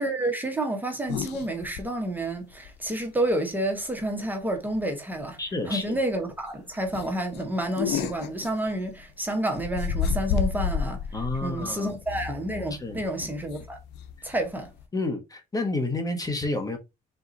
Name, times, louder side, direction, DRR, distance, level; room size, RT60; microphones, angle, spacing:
voice 1, 0.0-5.4 5.7-11.0 11.4-13.8 14.2-14.7, right 1 dB, 10° right, 1.0 m, -29 dB
sound 1, 1.1-1.8 2.2-2.3 2.6-2.7 4.0-4.3 4.5-4.8 5.2-5.3 5.6-5.7 6.1-6.3 6.9-9.1 9.5-14.8, left 7 dB, 85° left, 0.6 m, -31 dB
voice 2, 5.4-6.0 11.1-11.9 12.8-13.0 14.9-16.8, left 2 dB, 20° left, 0.9 m, -29 dB
3.7 x 2.8 x 3.9 m
cardioid pair, 110°, 17 cm